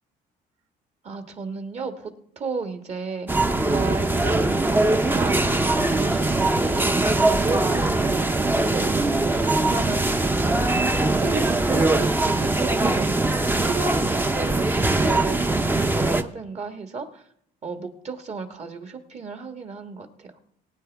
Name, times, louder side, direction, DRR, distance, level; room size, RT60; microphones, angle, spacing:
voice 1, 1.0-5.5 5.9-10.8 11.2-13.2 13.6-17.2 17.6-20.3, right 4 dB, 40° right, 7 dB, 1.5 m, -33 dB
sound 1, 3.3-16.2, right 2 dB, 10° right, 0.6 m, -22 dB
21.0 x 9.1 x 3.5 m, 0.69 s
cardioid pair, 110°, 17 cm